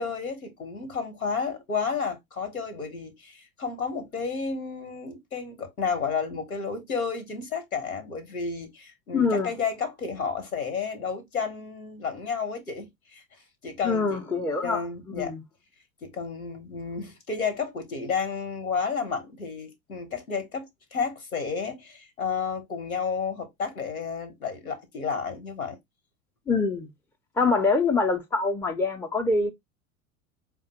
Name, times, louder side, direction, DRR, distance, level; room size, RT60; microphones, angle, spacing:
voice 1, 0.0-13.2 13.6-15.3 16.0-25.8 27.4-27.5, left 5 dB, 85° left, 1.1 m, -31 dB
voice 2, 9.1-9.5 13.8-15.4 26.5-26.9 27.4-29.5, left 4 dB, 5° left, 0.5 m, -25 dB
4.7 x 2.2 x 2.8 m
figure-of-eight pair, 85°, 41 cm